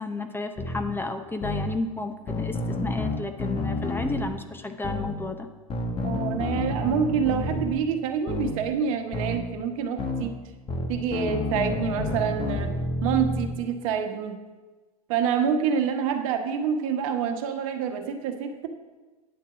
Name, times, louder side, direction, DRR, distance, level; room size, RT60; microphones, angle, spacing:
voice 1, 0.0-5.5, left 2 dB, 10° left, 7 dB, 0.6 m, -32 dB
sound 1, 0.6-0.8 1.4-1.7 2.3-4.3 4.8-5.1 5.7-7.7 8.3-8.5 9.1-9.4 10.0-10.2 10.7-13.5, left 2 dB, 30° left, 1.2 m, -29 dB
voice 2, 6.0-10.3 10.9-12.7 13.0-14.4 15.1-18.7, right 7 dB, 60° right, 6 dB, 1.1 m, -27 dB
9.3 x 4.5 x 7.0 m, 1.2 s
hypercardioid pair, 95°, 19 cm